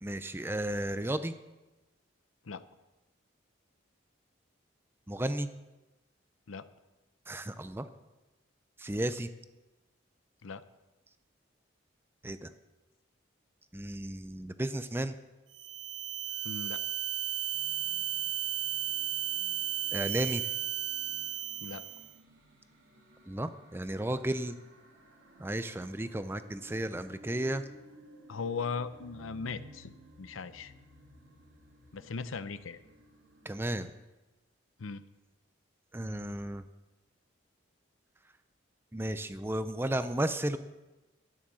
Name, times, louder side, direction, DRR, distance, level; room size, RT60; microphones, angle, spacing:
voice 1, 0.0-1.3 5.1-5.5 7.3-7.9 8.8-9.3 12.2-12.5 13.7-15.1 19.9-20.4 23.3-24.5 25.4-27.6 33.5-33.9 35.9-36.6 38.9-40.6, right 1 dB, 10° right, 11 dB, 0.5 m, -33 dB
sound 1, 15.5-22.1, right 12 dB, 60° right, 0.5 m, -34 dB
voice 2, 16.4-16.8 21.6-21.8 28.3-29.9 30.2-30.7 31.9-32.8 34.8-35.0, left 5 dB, 85° left, 13 dB, 0.7 m, -38 dB
sound 2, 17.5-33.9, right 1 dB, 85° right, 3.0 m, -57 dB
12.5 x 10.0 x 6.3 m, 1.1 s
head